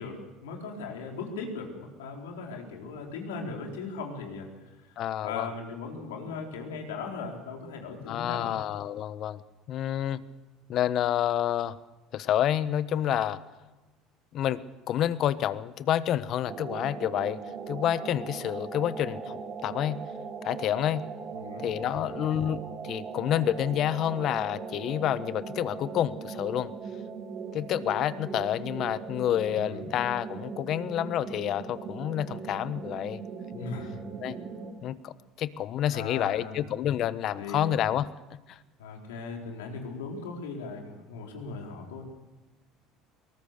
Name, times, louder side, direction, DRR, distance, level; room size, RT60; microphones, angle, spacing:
voice 1, 0.0-4.5 5.2-8.5 21.3-21.6 21.9-22.3 29.6-29.9 33.6-34.0 35.8-36.6 37.4-37.7 38.8-42.0, left 4 dB, 90° left, 1 dB, 4.2 m, -38 dB
voice 2, 5.0-5.5 8.1-9.4 9.7-10.2 10.7-11.8 12.1-13.4 14.3-14.6 14.9-17.4 17.7-20.0 20.4-21.1 21.6-26.7 27.5-33.2 33.5-33.7 34.2-34.4 34.8-38.1 38.5-38.6, left 11 dB, 55° left, 15 dB, 1.1 m, -29 dB
sound 1, 16.4-34.7, right 5 dB, 45° right, 3.7 m, -39 dB
22.5 x 19.5 x 6.7 m, 1.1 s
hypercardioid pair, 80°, 0 cm